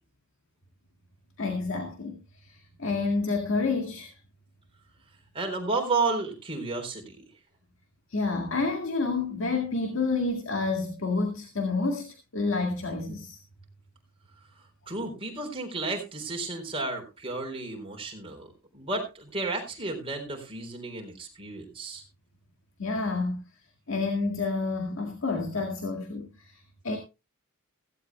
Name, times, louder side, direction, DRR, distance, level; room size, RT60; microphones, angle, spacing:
voice 1, 1.4-4.1 8.1-13.4 22.8-23.4 23.9-27.0, left 3 dB, 60° left, 4 dB, 2.0 m, -29 dB
voice 2, 5.3-7.2 14.9-22.0, right 3 dB, 25° right, 3 dB, 3.9 m, -32 dB
16.5 x 15.5 x 2.2 m, 0.28 s
head